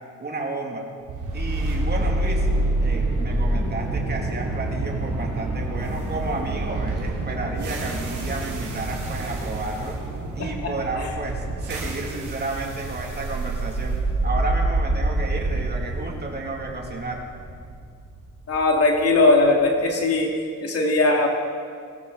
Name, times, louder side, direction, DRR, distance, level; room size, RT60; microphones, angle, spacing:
voice 1, 0.2-0.9 1.3-2.5 2.8-10.0 10.3-17.2, right 2 dB, 35° right, 0 dB, 2.8 m, -32 dB
sound 1, 1.1-19.2, right 2 dB, 90° right, 3.3 m, -27 dB
voice 2, 18.5-20.3 20.6-21.3, left 2 dB, 50° left, 0 dB, 2.7 m, -19 dB
22.0 x 14.0 x 4.1 m, 2.2 s
cardioid pair, 90°, 30 cm